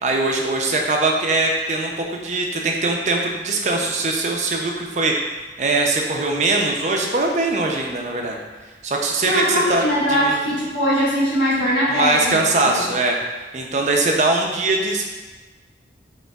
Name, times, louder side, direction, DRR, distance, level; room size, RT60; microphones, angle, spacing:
voice 1, 0.0-5.2 5.6-8.4 8.8-10.4 11.9-13.2 13.5-15.1, right 2 dB, 40° right, 1 dB, 0.4 m, -21 dB
voice 2, 9.2-12.9, equal, 90° left, -9 dB, 1.3 m, -21 dB
5.2 x 2.9 x 2.3 m, 1.3 s
head